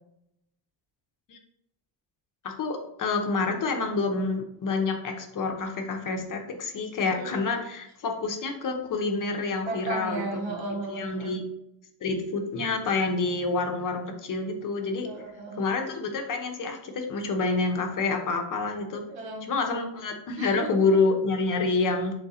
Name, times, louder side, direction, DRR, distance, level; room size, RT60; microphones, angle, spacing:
voice 1, 2.4-10.5 10.9-11.4 12.0-15.1 15.6-19.0 19.4-22.1, left 3 dB, 45° left, 4 dB, 0.7 m, -28 dB
voice 2, 7.1-7.7 9.6-11.3 15.0-15.7 19.1-19.5 20.4-21.0, right 3 dB, 80° right, 1 dB, 1.3 m, -35 dB
3.7 x 3.3 x 4.1 m, 0.80 s
cardioid pair, 155°, 46 cm